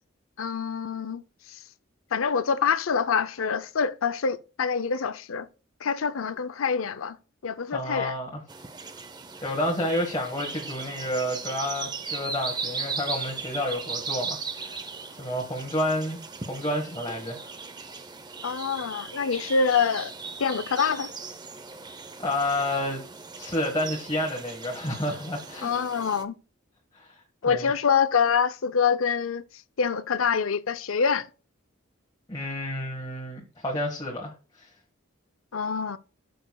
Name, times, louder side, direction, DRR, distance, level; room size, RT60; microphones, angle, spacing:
voice 1, 0.4-1.2 1.5-1.6 2.1-5.5 5.8-7.2 7.4-8.1 18.4-20.1 20.4-21.1 25.6-26.3 27.4-29.4 29.8-31.3 35.5-36.0, left 6 dB, 85° left, 0.6 m, -25 dB
voice 2, 7.7-8.4 9.4-14.8 15.1-17.5 21.8-23.0 23.4-25.7 26.9-27.7 32.3-34.7, left 1 dB, 20° left, 1.4 m, -30 dB
sound 1, 8.5-26.2, right 4 dB, 20° right, 0.7 m, -38 dB
12.5 x 6.8 x 2.3 m
head